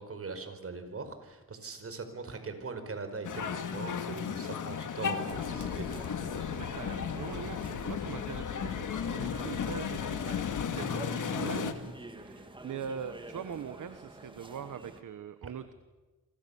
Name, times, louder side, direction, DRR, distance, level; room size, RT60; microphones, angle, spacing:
voice 1, 0.0-6.2, right 4 dB, 40° right, 8 dB, 4.9 m, -41 dB
sound 1, 3.2-11.7, left 7 dB, 60° left, 2.3 m, -35 dB
sound 2, 5.2-15.0, right 2 dB, 15° right, 2.7 m, -48 dB
sound 3, 5.3-10.6, left 10 dB, 75° left, 1.2 m, -43 dB
voice 2, 6.5-10.5 10.7-15.7, right 7 dB, 60° right, 11 dB, 1.3 m, -42 dB
28.5 x 24.5 x 7.2 m, 1.2 s
cardioid pair, 100°, 35 cm